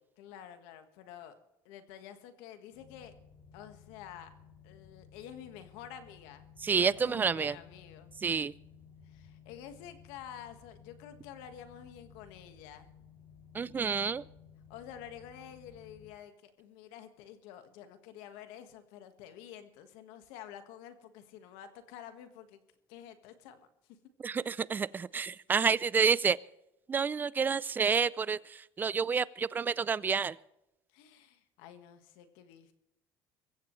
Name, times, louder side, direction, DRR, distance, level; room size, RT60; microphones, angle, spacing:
voice 1, 0.2-1.3 1.6-3.1 3.5-4.3 4.6-8.1 9.0-12.9 14.7-22.6 22.9-24.0 25.5-25.7 30.9-32.7, left 9 dB, 90° left, 8 dB, 1.6 m, -49 dB
sound 1, 2.7-16.1, left 7 dB, 55° left, 5.6 m, -57 dB
voice 2, 6.6-7.6 8.2-8.5 13.5-14.3 24.2-26.4 26.9-30.4, right 6 dB, 20° right, 20 dB, 0.4 m, -29 dB
23.0 x 15.5 x 3.2 m, 0.87 s
cardioid pair, 125°, 8 cm